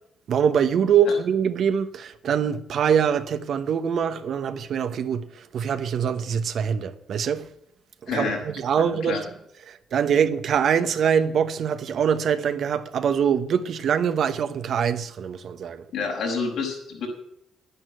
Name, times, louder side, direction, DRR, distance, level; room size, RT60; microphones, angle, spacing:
voice 1, 0.3-7.5 8.1-9.2 9.7-15.8, right 7 dB, 65° right, 1.0 m, -24 dB
voice 2, 8.1-8.4 8.8-9.2 15.9-17.1, left 4 dB, 80° left, 5.5 m, -28 dB
11.0 x 9.8 x 7.5 m
cardioid pair, 90°, 0 cm